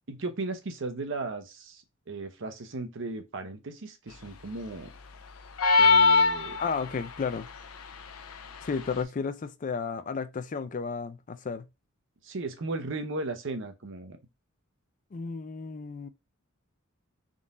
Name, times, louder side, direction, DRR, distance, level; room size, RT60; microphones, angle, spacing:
voice 1, 0.1-4.9 5.8-6.6 12.2-14.2, right 3 dB, 60° right, 0.7 m, -36 dB
sound 1, 5.6-7.0, left 4 dB, 90° left, 0.6 m, -20 dB
voice 2, 6.6-7.5 8.6-11.6 15.1-16.1, left 5 dB, 40° left, 0.4 m, -33 dB
3.7 x 2.5 x 4.0 m
head